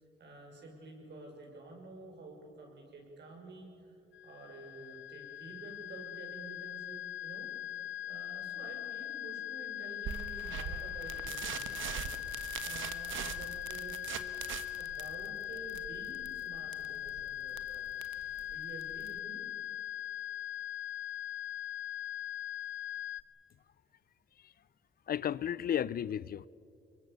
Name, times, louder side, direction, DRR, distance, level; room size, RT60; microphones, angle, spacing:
voice 1, 0.2-4.0 4.2-14.2 14.8-19.4, right 2 dB, 60° right, 6.3 m, -50 dB
sound 1, 4.1-23.2, left 12 dB, 70° left, 0.9 m, -41 dB
sound 2, 10.0-19.2, right 9 dB, 80° right, 1.3 m, -43 dB
voice 2, 25.1-26.5, left 9 dB, 50° left, 0.5 m, -34 dB
24.5 x 22.0 x 6.8 m
cardioid pair, 90°, 20 cm